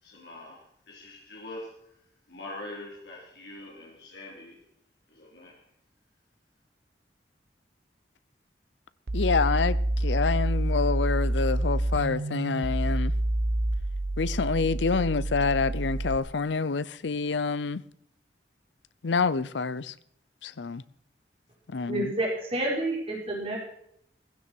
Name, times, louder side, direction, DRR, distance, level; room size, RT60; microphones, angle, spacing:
voice 1, 0.0-1.7 2.3-4.6 5.1-5.6, left 1 dB, 70° left, 3.7 m, -43 dB
voice 2, 9.1-13.1 14.2-17.8 19.0-19.9 20.4-20.8 21.7-22.1, left 4 dB, 90° left, 0.6 m, -27 dB
sound 1, 9.1-16.2, right 1 dB, 60° right, 0.9 m, -27 dB
voice 3, 21.9-23.6, right 1 dB, 30° right, 4.8 m, -29 dB
15.5 x 15.5 x 4.5 m
head